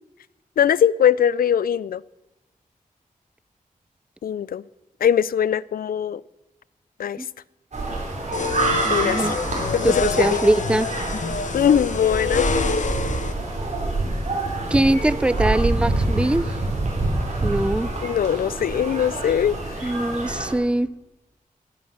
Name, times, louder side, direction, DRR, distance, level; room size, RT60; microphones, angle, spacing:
voice 1, 0.6-2.0 4.2-4.6 5.0-6.2 7.0-7.2 8.9-9.4 9.7-10.4 11.5-12.5 18.0-19.9, left 9 dB, 85° left, 0.4 m, -21 dB
sound 1, 7.7-20.5, right 2 dB, 50° right, 3.8 m, -26 dB
sound 2, 8.3-13.3, left 4 dB, 60° left, 1.0 m, -27 dB
voice 2, 8.8-9.3 9.8-10.9 14.7-16.5 17.4-17.9 19.8-20.9, right 1 dB, 5° right, 0.4 m, -22 dB
13.5 x 10.5 x 6.6 m
wide cardioid pair, 155°, 15 cm